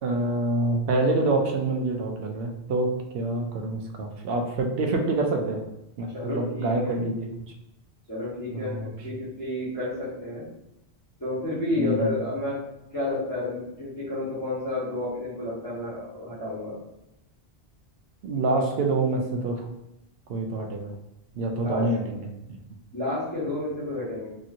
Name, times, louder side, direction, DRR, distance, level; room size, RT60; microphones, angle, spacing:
voice 1, 0.0-5.6 6.0-7.3 8.6-8.9 11.8-12.2 18.2-19.7 20.3-20.9 21.4-22.2 22.5-22.6, right 2 dB, 70° right, 3 dB, 0.7 m, -26 dB
voice 2, 6.1-7.0 8.1-8.8 9.0-10.5 11.2-12.6 12.9-16.8 21.6-21.9 22.9-24.3, left 2 dB, 20° left, -14 dB, 1.2 m, -30 dB
3.0 x 2.8 x 2.5 m, 0.87 s
omnidirectional pair, 1.1 m